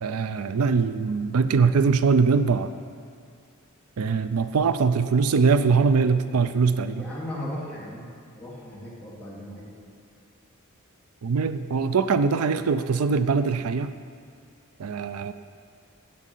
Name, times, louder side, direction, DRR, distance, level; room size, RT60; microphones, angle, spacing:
voice 1, 0.0-2.7 4.0-7.1 11.2-13.9 14.8-15.3, right 5 dB, 85° right, 11 dB, 0.5 m, -22 dB
voice 2, 6.9-8.1 8.3-9.7, left 1 dB, 5° left, -8 dB, 3.3 m, -36 dB
10.0 x 8.4 x 9.1 m, 2.4 s
head